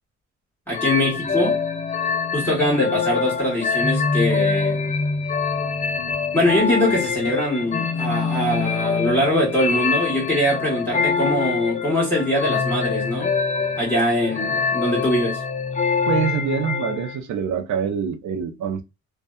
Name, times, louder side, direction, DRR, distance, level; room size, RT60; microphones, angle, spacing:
sound 1, 0.7-17.2, left 5 dB, 25° left, 0.4 m, -24 dB
voice 1, 0.7-1.6 2.3-4.9 6.1-13.3 13.8-15.4, left 1 dB, 5° left, 1.1 m, -22 dB
voice 2, 16.1-18.8, right 7 dB, 80° right, 0.6 m, -25 dB
2.6 x 2.2 x 2.2 m
cardioid pair, 125°, 29 cm